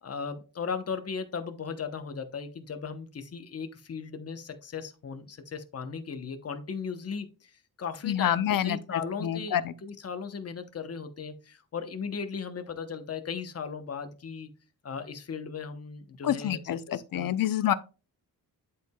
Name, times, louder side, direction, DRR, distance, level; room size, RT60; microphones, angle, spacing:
voice 1, 0.0-7.5 7.8-8.4 8.6-14.5 14.8-16.6 16.9-17.3 17.6-17.7, left 6 dB, 40° left, 1.0 m, -37 dB
voice 2, 8.0-9.7 16.2-17.7, left 11 dB, 65° left, 0.6 m, -28 dB
11.5 x 4.7 x 2.3 m
wide cardioid pair, 165°, 36 cm